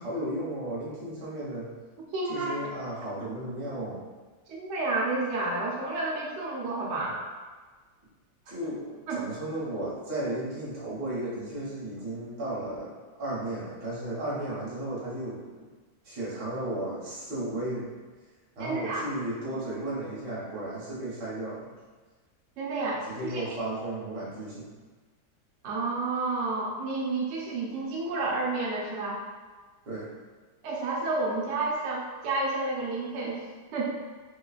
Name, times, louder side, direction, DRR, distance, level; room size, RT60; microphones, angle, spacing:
voice 1, 0.0-1.7 2.3-4.0 8.5-12.9 13.2-15.4 16.0-17.9 18.6-21.7 23.1-24.7 29.9-30.1, right 1 dB, 80° right, -7 dB, 1.8 m, -34 dB
voice 2, 2.1-2.6 4.5-7.2 9.1-9.3 18.6-19.1 22.6-23.4 25.6-29.2 30.6-33.4 33.7-34.0, right 3 dB, 60° right, -4 dB, 0.8 m, -30 dB
3.7 x 3.1 x 2.4 m, 1.4 s
omnidirectional pair, 1.8 m